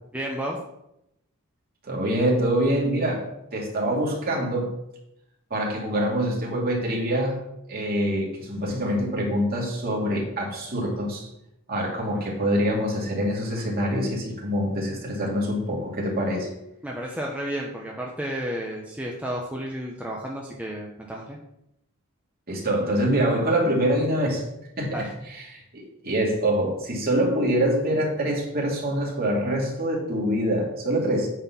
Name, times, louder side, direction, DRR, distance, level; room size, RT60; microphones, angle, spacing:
voice 1, 0.1-0.6 12.1-12.2 16.8-21.4 24.9-25.1, right 1 dB, 5° right, -2 dB, 0.8 m, -32 dB
voice 2, 1.8-4.7 5.5-7.4 7.7-11.3 11.7-16.5 22.5-24.4 24.8-25.0 25.3-31.3, right 1 dB, 45° right, -3 dB, 2.6 m, -25 dB
8.9 x 4.4 x 5.9 m, 0.82 s
head